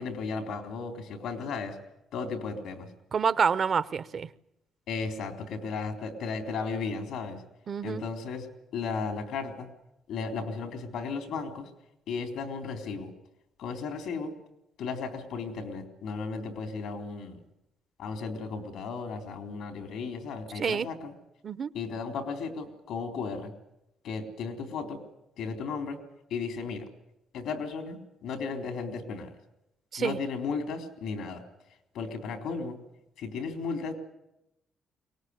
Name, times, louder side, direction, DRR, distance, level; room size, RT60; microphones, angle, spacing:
voice 1, 0.0-1.8 2.1-2.9 4.9-7.4 7.8-8.5 8.7-9.7 10.1-11.7 12.1-13.1 13.6-14.3 14.8-17.4 18.0-21.1 21.7-23.5 24.0-25.0 25.4-26.0 26.3-26.9 27.3-29.3 30.0-31.4 31.9-32.8 33.2-33.9, left 4 dB, 80° left, 3.8 m, -35 dB
voice 2, 3.1-4.3 7.7-8.0 20.6-20.9 21.4-21.7 29.9-30.2, right 6 dB, 50° right, 0.8 m, -27 dB
23.0 x 19.0 x 9.7 m
cardioid pair, 90°, 0 cm